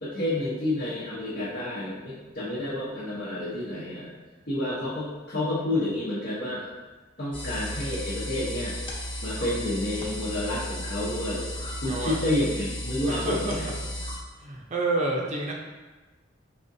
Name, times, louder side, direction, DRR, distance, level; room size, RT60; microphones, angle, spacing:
voice 1, 0.0-4.1 4.5-6.7 7.2-8.8 9.2-11.4 11.8-13.7, left 1 dB, 55° left, -10 dB, 0.9 m, -29 dB
sound 1, 7.3-14.2, equal, 30° left, 0.9 m, -34 dB
voice 2, 11.8-12.2 13.1-13.7 14.4-15.5, right 2 dB, 35° right, -1 dB, 0.5 m, -29 dB
5.1 x 3.5 x 2.7 m, 1.2 s
head